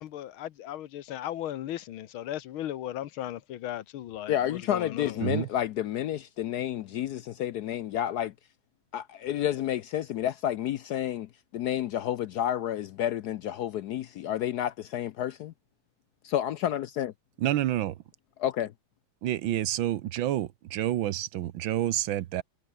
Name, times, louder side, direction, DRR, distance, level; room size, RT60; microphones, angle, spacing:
voice 1, 0.0-5.2, left 12 dB, 90° left, 1.8 m, -37 dB
voice 2, 4.3-8.3 8.9-15.5 16.2-17.1 18.4-18.7, left 11 dB, 70° left, 0.9 m, -30 dB
voice 3, 17.4-17.9 19.2-22.4, right 13 dB, 75° right, 1.6 m, -28 dB
omnidirectional pair, 2.2 m